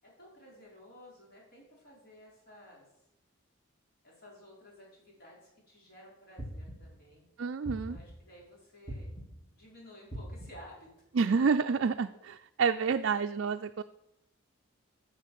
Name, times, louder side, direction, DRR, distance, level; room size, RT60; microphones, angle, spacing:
voice 1, 0.0-3.0 4.0-5.4 5.7-7.3 7.8-9.1 9.5-10.9 12.9-13.2, equal, 45° left, -5 dB, 5.2 m, -54 dB
sound 1, 6.4-7.0 7.6-8.3 8.9-9.5 10.1-10.8, right 1 dB, 20° left, 2.1 m, -42 dB
voice 2, 7.4-8.0 11.2-12.1 12.6-13.8, right 5 dB, 60° right, 7 dB, 0.4 m, -28 dB
11.0 x 6.8 x 7.5 m, 0.84 s
head